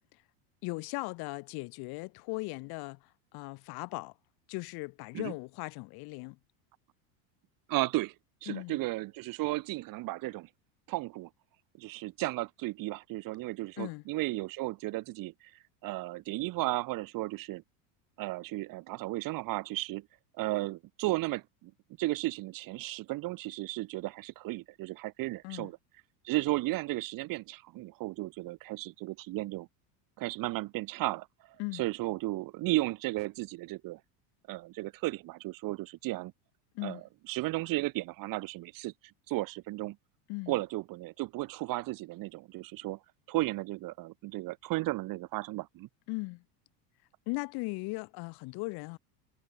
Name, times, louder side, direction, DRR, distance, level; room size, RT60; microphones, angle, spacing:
voice 1, 0.6-3.0 3.3-4.1 4.5-6.4 8.5-8.8 13.8-14.0 25.4-25.7 31.6-31.8 36.8-37.0 40.3-40.6 46.1-46.4 47.3-49.0, left 26 dB, 50° left, 2.1 m, -38 dB
voice 2, 7.7-8.1 8.4-10.5 10.9-11.3 11.8-15.5 15.8-17.6 18.2-20.1 20.4-21.7 22.0-25.8 26.2-29.7 30.2-31.3 31.7-34.0 34.5-36.3 36.8-37.0 37.3-38.9 39.3-40.0 40.5-43.0 43.3-45.9, right 19 dB, 40° right, 3.1 m, -34 dB
supercardioid pair, 160°, 49 cm